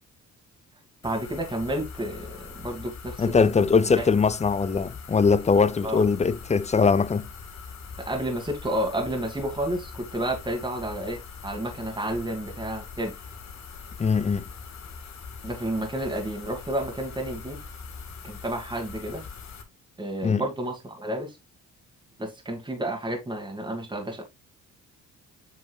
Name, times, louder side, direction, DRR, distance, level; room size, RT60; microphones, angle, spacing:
sound 1, 1.0-19.6, left 5 dB, 65° left, 1.8 m, -42 dB
voice 1, 1.0-3.6 4.0-4.1 5.8-6.0 8.0-13.1 15.4-17.6 18.2-19.2 20.0-21.4 22.2-24.2, right 1 dB, 15° right, 2.1 m, -31 dB
voice 2, 3.2-7.3 14.0-14.4 20.2-20.4, left 5 dB, 20° left, 0.6 m, -21 dB
8.1 x 5.3 x 2.4 m
cardioid pair, 90°, 30 cm